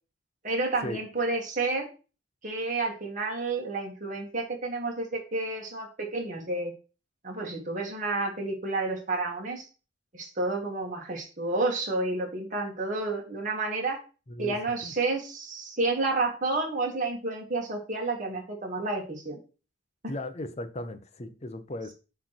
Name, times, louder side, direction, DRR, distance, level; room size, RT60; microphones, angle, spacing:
voice 1, 0.4-1.9 2.4-6.7 7.2-9.6 10.1-14.0 14.4-19.4 20.0-20.1, right 3 dB, 45° right, 2.2 m, -30 dB
voice 2, 14.3-14.9 20.1-21.9, left 1 dB, 35° left, 0.8 m, -37 dB
7.9 x 3.3 x 5.9 m
head